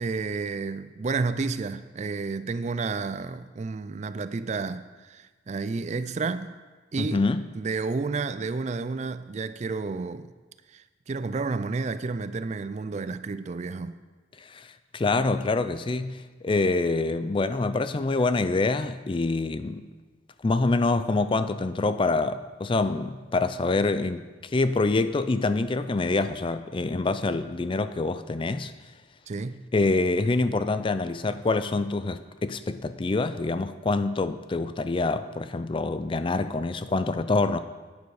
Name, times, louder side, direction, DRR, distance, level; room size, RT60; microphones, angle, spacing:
voice 1, 0.0-6.6 6.9-7.2 7.5-10.3 10.7-14.0 29.3-29.7, right 4 dB, 35° right, 0.4 m, -31 dB
voice 2, 7.0-7.5 14.4-19.8 20.4-28.7 29.7-37.6, left 3 dB, 25° left, 0.4 m, -26 dB
11.5 x 9.4 x 4.8 m
head